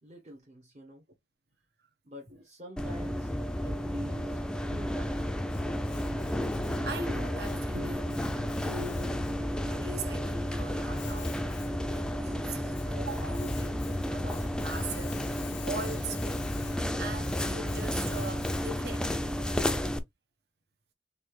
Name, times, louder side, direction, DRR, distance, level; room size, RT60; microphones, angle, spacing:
voice 1, 0.0-1.0 2.0-3.3 3.6-4.4 4.7-5.2, equal, 40° right, 1.1 m, -47 dB
sound 1, 2.8-20.0, equal, 5° left, 0.3 m, -32 dB
Domestic sounds home sounds, 5.2-19.0, left 6 dB, 70° left, 0.4 m, -48 dB
voice 2, 5.7-19.1, right 2 dB, 60° right, 1.1 m, -42 dB
sound 2, 14.5-19.6, right 2 dB, 90° right, 2.0 m, -53 dB
4.2 x 3.5 x 3.2 m
head